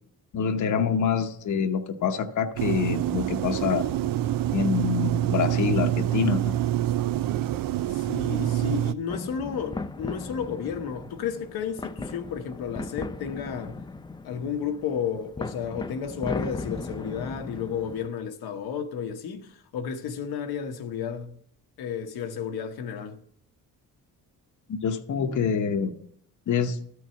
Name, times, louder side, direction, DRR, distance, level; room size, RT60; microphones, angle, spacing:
voice 1, 0.3-3.9 4.5-6.5 24.7-25.9 26.5-26.8, left 6 dB, 55° left, 0.9 m, -26 dB
sound 1, 2.6-8.9, right 13 dB, 65° right, 0.5 m, -26 dB
voice 2, 7.9-13.8 14.2-21.3 21.8-23.2, left 7 dB, 80° left, 1.1 m, -32 dB
sound 2, 9.1-18.1, left 3 dB, 15° left, 0.4 m, -37 dB
13.0 x 4.7 x 6.8 m
cardioid pair, 85°, 37 cm